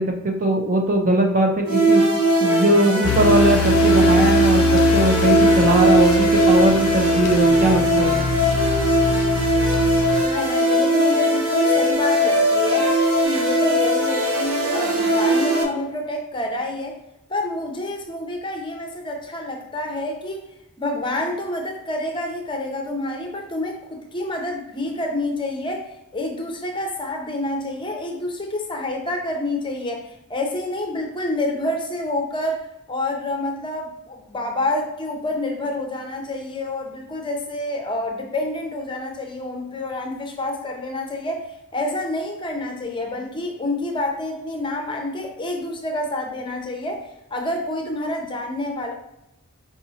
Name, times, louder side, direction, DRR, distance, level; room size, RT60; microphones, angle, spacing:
voice 1, 0.0-2.0 2.4-4.6 4.9-8.1, right 1 dB, 35° right, 2 dB, 0.5 m, -20 dB
sound 1, 1.7-15.6, right 1 dB, 85° right, 1.0 m, -19 dB
sound 2, 3.0-10.2, left 8 dB, 80° left, 0.3 m, -25 dB
voice 2, 10.2-12.9 13.2-17.0 17.3-20.4 20.8-25.9 26.1-41.4 41.7-48.9, left 1 dB, 20° left, 2 dB, 0.6 m, -28 dB
4.8 x 4.0 x 2.8 m, 0.87 s
head